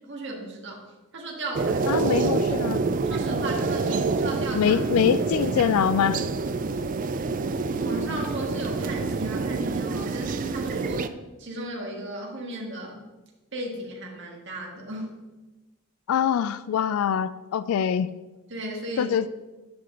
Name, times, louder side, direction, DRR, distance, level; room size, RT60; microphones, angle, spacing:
voice 1, 0.1-0.8 1.1-2.1 2.5-2.6 3.0-4.8 7.8-11.1 11.4-13.0 13.5-15.2 18.5-19.2, right 1 dB, 55° right, -1 dB, 1.7 m, -35 dB
sound 1, 1.5-11.1, right 4 dB, 40° right, 0.3 m, -27 dB
voice 2, 1.9-2.8 4.5-6.2 16.1-18.1 19.0-19.3, left 8 dB, 80° left, 14 dB, 0.3 m, -24 dB
9.5 x 6.0 x 3.8 m, 1.1 s
head